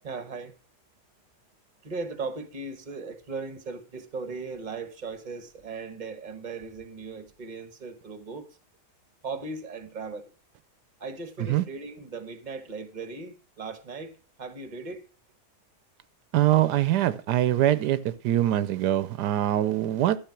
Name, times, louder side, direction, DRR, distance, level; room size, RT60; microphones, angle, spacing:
voice 1, 0.0-0.5 1.8-8.5 9.2-10.3 11.0-14.1 14.4-15.1, right 4 dB, 30° right, 1.2 m, -37 dB
voice 2, 16.3-20.2, right 13 dB, 80° right, 1.2 m, -23 dB
12.0 x 5.2 x 5.9 m
omnidirectional pair, 1.7 m